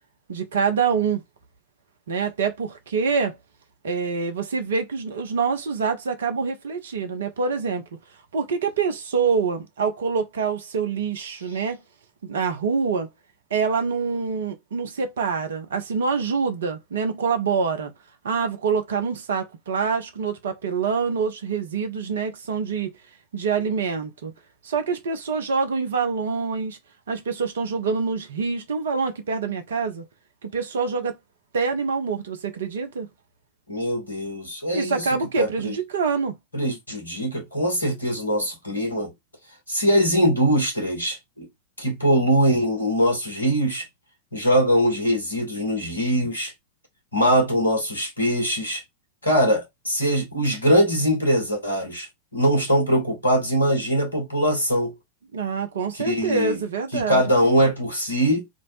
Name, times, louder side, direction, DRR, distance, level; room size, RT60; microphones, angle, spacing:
voice 1, 0.3-1.2 2.1-3.4 3.8-7.8 8.3-11.8 12.2-13.1 13.5-17.9 18.2-22.9 23.3-24.3 24.6-26.8 27.1-30.0 30.4-31.2 31.5-33.1 34.7-36.3 55.3-57.2, right 5 dB, 65° right, 0.6 m, -25 dB
voice 2, 33.7-35.1 35.4-35.8 36.5-39.1 39.7-41.5 41.8-43.9 44.3-46.5 47.1-48.8 49.2-52.1 52.3-54.9 56.0-56.6 56.9-58.5, equal, 80° left, 1.0 m, -22 dB
2.6 x 2.0 x 2.8 m
figure-of-eight pair, 90°, 0 cm